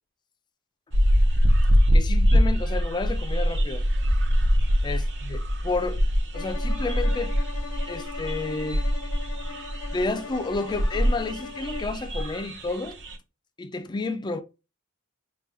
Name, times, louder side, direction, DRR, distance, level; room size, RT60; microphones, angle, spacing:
sound 1, 0.9-13.1, equal, 55° right, 0.7 m, -23 dB
voice 1, 1.9-3.8 4.8-6.0 6.3-7.3 7.9-8.8 9.9-13.0 13.6-14.4, left 3 dB, 20° left, 0.3 m, -30 dB
Bowed string instrument, 6.3-12.0, left 5 dB, 65° left, 0.6 m, -40 dB
3.5 x 2.2 x 4.2 m
head